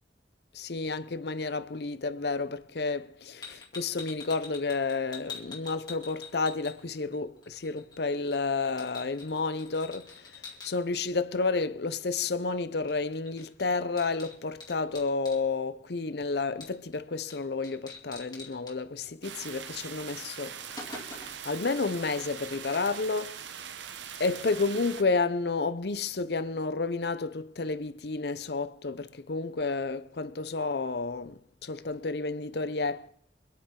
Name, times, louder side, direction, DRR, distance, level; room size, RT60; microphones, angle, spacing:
voice 1, 0.5-20.6 21.4-23.4 24.2-33.1, left 3 dB, 65° left, 0.7 m, -31 dB
sound 1, 3.4-7.2 7.4-10.7 12.9-13.0 13.3-15.4 16.6-17.0 17.3-17.4 17.6-18.7 19.8-19.9 20.3-21.5, left 4 dB, 25° left, 2.4 m, -45 dB
sound 2, 19.2-25.0, right 8 dB, 85° right, 0.9 m, -42 dB
24.5 x 8.6 x 3.8 m
head